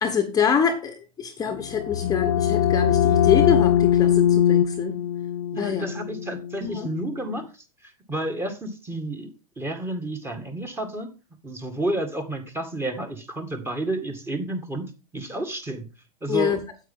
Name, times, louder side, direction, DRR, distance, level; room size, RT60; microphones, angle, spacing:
voice 1, 0.0-5.0 5.6-5.9 6.6-6.9 16.3-16.6, left 7 dB, 20° left, 6 dB, 1.1 m, -25 dB
sound 1, 1.5-7.1, left 9 dB, 50° left, 0.7 m, -22 dB
voice 2, 5.5-9.3 9.6-11.1 11.4-14.8 15.1-15.8 16.2-16.6, right 1 dB, 10° right, 5 dB, 2.1 m, -31 dB
9.1 x 8.4 x 3.8 m, 0.31 s
hypercardioid pair, 105°, 18 cm